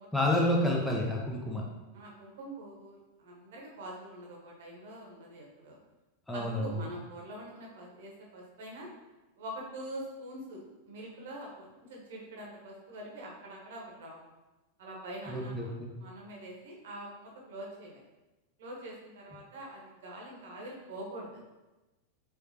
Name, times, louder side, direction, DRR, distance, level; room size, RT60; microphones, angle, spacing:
voice 1, 0.1-1.6 6.3-6.8 15.3-15.9, left 1 dB, 5° left, -2 dB, 0.8 m, -29 dB
voice 2, 1.9-5.8 6.3-8.9 9.4-14.2 14.8-18.0 18.6-21.4, right 1 dB, 55° right, -2 dB, 1.1 m, -44 dB
4.8 x 3.2 x 2.9 m, 1.1 s
figure-of-eight pair, 90°, 0 cm